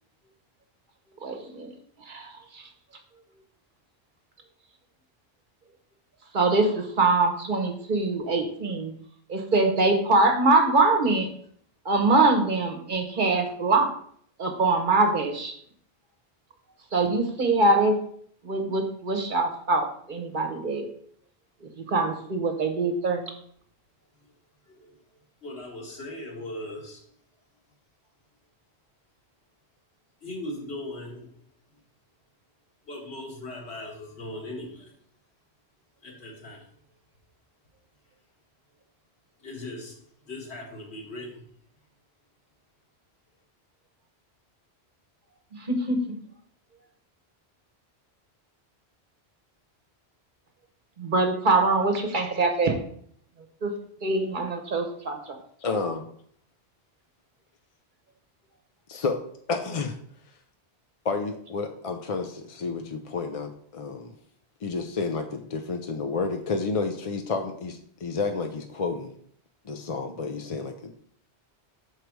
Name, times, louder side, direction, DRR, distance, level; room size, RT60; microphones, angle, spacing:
voice 1, 1.2-1.7 2.1-2.7 6.3-8.9 9.3-11.3 11.8-13.9 14.4-15.6 16.9-18.0 18.4-20.9 21.8-23.3 45.6-46.0 51.0-52.8 53.6-55.4, right 3 dB, 50° right, 5 dB, 1.0 m, -23 dB
voice 2, 25.4-27.0 30.2-31.3 32.8-34.9 36.0-36.7 39.4-41.4, left 1 dB, 75° left, -1 dB, 2.0 m, -39 dB
voice 3, 55.6-56.0 58.9-59.2 59.5-60.0 61.0-64.1 64.6-69.1 69.6-71.0, left 4 dB, 45° left, 6 dB, 0.5 m, -30 dB
6.5 x 4.7 x 4.6 m, 0.62 s
omnidirectional pair, 1.1 m